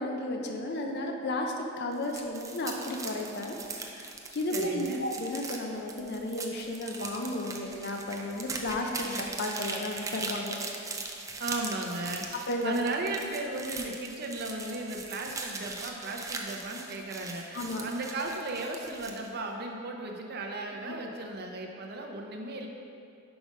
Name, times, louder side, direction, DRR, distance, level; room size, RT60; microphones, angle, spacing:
voice 1, 0.0-3.6 3.9-10.5 12.5-12.7 17.5-17.8, left 1 dB, 55° left, 2 dB, 0.5 m, -33 dB
sound 1, 1.9-19.3, right 3 dB, 15° right, 0.4 m, -40 dB
voice 2, 4.5-5.0 11.4-12.3 12.6-22.7, right 2 dB, 50° right, 1 dB, 0.6 m, -36 dB
5.2 x 4.9 x 5.1 m, 2.6 s
head